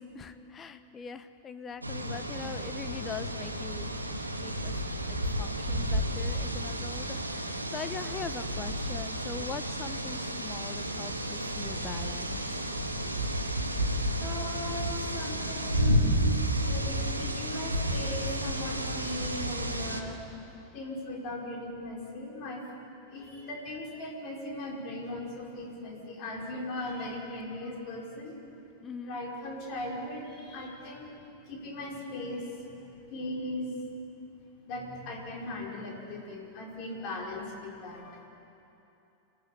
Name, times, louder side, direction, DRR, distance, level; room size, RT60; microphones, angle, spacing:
voice 1, 0.1-12.6 28.8-29.2, left 6 dB, 20° left, 10 dB, 0.9 m, -42 dB
sound 1, 1.8-20.0, equal, 85° right, 1.6 m, -31 dB
voice 2, 14.1-20.2 20.7-22.6 23.1-28.4 29.0-31.1 31.5-32.8 33.1-33.7 34.6-38.3, left 1 dB, 40° left, -1 dB, 5.0 m, -38 dB
27.5 x 17.0 x 8.3 m, 2.9 s
figure-of-eight pair, 90°, 0 cm